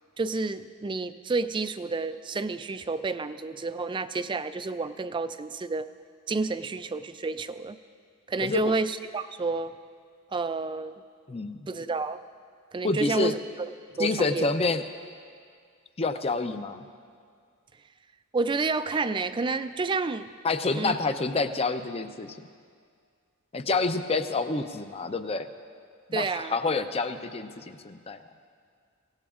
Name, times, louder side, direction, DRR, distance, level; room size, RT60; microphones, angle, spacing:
voice 1, 0.2-5.9 6.3-7.8 8.3-9.8 10.3-10.9 11.7-12.2 12.7-13.4 14.0-14.5 18.3-20.3 20.7-21.0 26.1-26.5, right 3 dB, 20° right, 12 dB, 0.4 m, -29 dB
voice 2, 8.4-8.7 11.3-11.7 12.8-13.3 14.0-14.8 16.0-16.9 20.4-22.5 23.5-25.5 26.1-28.2, left 3 dB, 25° left, 9 dB, 0.6 m, -28 dB
24.5 x 16.5 x 2.5 m, 2.1 s
head